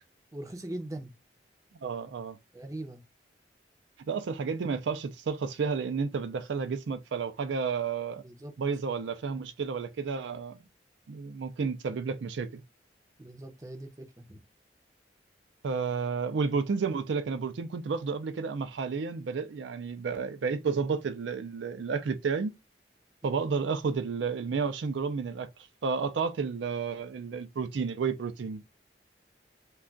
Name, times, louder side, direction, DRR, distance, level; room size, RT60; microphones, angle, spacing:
voice 1, 0.3-1.1 2.5-3.0 8.2-8.5 13.2-14.4, right 1 dB, 20° right, 0.5 m, -41 dB
voice 2, 1.8-2.4 4.1-8.2 8.6-10.6 11.1-12.6 15.6-22.5 23.2-25.5 25.8-28.6, right 5 dB, 85° right, 0.4 m, -31 dB
2.3 x 2.3 x 3.7 m
head